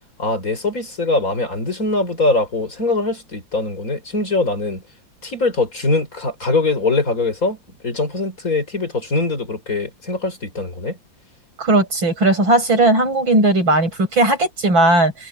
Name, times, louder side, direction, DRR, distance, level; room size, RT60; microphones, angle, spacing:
voice 1, 0.2-4.8 5.2-7.6 7.8-11.0, left 3 dB, 45° left, 5.1 m, -22 dB
voice 2, 11.6-15.3, right 2 dB, 80° right, 9.0 m, -17 dB
omnidirectional pair, 2.1 m